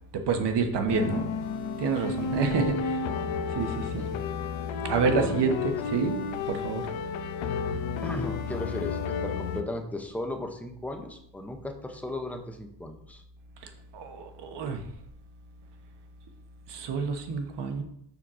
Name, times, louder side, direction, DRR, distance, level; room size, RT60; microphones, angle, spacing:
voice 1, 0.1-1.3 1.8-3.0 3.5-4.1 4.8-6.1 6.5-6.8 7.7-7.8 13.6-14.8 16.7-17.8, right 5 dB, 65° right, 5 dB, 1.2 m, -28 dB
sound 1, 0.9-9.6, left 5 dB, 85° left, 0.8 m, -32 dB
voice 2, 5.0-5.6 8.0-13.2, left 1 dB, 5° left, 4 dB, 0.6 m, -36 dB
7.0 x 6.4 x 3.7 m, 0.71 s
cardioid pair, 175°, 45 cm